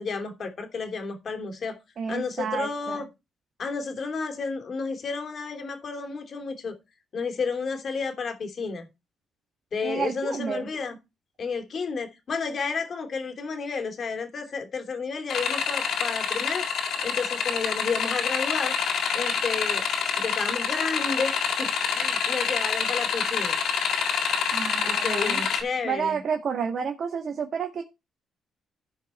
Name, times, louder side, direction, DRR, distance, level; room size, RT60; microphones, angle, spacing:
voice 1, 0.0-1.8 2.1-3.1 3.6-6.7 7.1-8.9 9.7-11.0 11.4-18.7 19.1-19.8 20.2-23.6 24.8-26.2, left 5 dB, 50° left, 2.9 m, -31 dB
voice 2, 2.0-3.0 9.8-10.7 24.5-25.4 25.8-27.8, right 6 dB, 55° right, 1.7 m, -30 dB
sound 1, 15.3-25.6, left 6 dB, 70° left, 3.5 m, -27 dB
15.0 x 5.2 x 4.3 m
cardioid pair, 90°, 0 cm